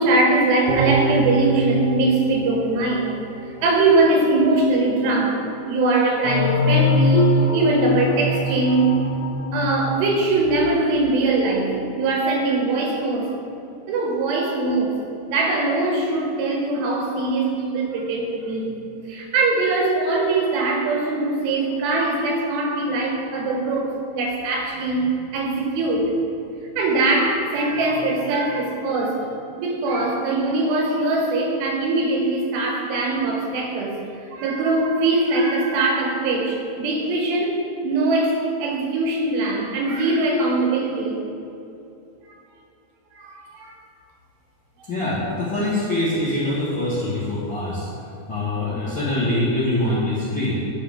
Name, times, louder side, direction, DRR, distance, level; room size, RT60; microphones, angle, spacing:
voice 1, 0.0-3.2 3.6-8.9 9.5-13.3 13.9-15.0 15.3-18.8 19.1-26.1 26.8-29.3 29.6-34.0 34.3-41.2 42.3-42.4 43.1-43.8 44.8-44.9, right 2 dB, 90° right, -1 dB, 3.4 m, -21 dB
sound 1, 0.7-4.0 4.4-4.5, right 3 dB, 65° right, 2.5 m, -26 dB
sound 2, 6.2-10.8, left 2 dB, 80° left, 2.4 m, -22 dB
voice 2, 44.9-47.9 48.3-50.6, left 1 dB, 50° left, -12 dB, 1.4 m, -24 dB
12.5 x 5.4 x 3.6 m, 2.7 s
omnidirectional pair, 4.7 m